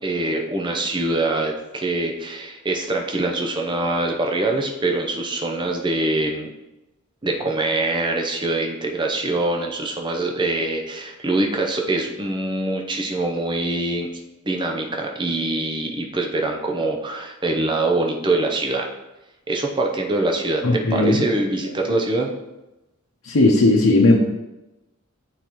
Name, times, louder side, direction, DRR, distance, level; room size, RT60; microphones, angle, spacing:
voice 1, 0.0-6.5 7.2-14.1 14.4-18.9 19.5-22.3, right 2 dB, 20° right, 1 dB, 0.7 m, -24 dB
voice 2, 20.6-21.3 23.2-24.2, left 2 dB, 80° left, -3 dB, 0.9 m, -16 dB
8.9 x 4.1 x 3.0 m, 0.99 s
head